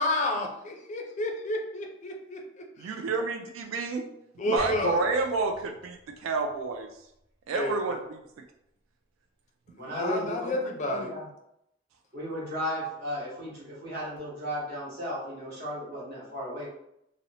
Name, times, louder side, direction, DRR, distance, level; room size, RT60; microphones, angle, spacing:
voice 1, 0.0-2.9 4.4-5.0 7.5-7.8 9.7-11.2, left 2 dB, 40° left, 2 dB, 0.4 m, -31 dB
voice 2, 2.8-4.1 4.4-6.9 7.5-8.2, right 4 dB, 85° right, 4 dB, 0.3 m, -29 dB
sound 1, 4.6-7.7, equal, 30° right, 0.8 m, -46 dB
voice 3, 9.8-10.6 10.8-11.3 12.1-16.7, equal, 55° right, -5 dB, 1.0 m, -35 dB
2.7 x 2.0 x 2.7 m, 0.79 s
head